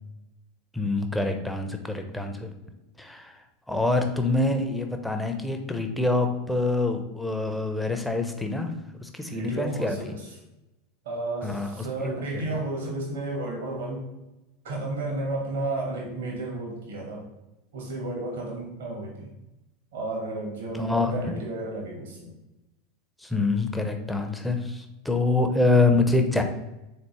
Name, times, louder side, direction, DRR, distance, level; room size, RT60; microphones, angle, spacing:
voice 1, 0.7-2.5 3.0-3.3 3.7-8.7 9.0-10.1 11.4-11.8 12.0-12.2 20.7-21.3 23.2-26.4, left 3 dB, 5° left, 5 dB, 0.5 m, -25 dB
voice 2, 9.3-10.4 11.0-14.1 14.6-17.3 17.7-19.3 19.9-22.3, right 2 dB, 65° right, -2 dB, 1.0 m, -32 dB
3.9 x 3.4 x 2.9 m, 0.96 s
figure-of-eight pair, 80°, 0 cm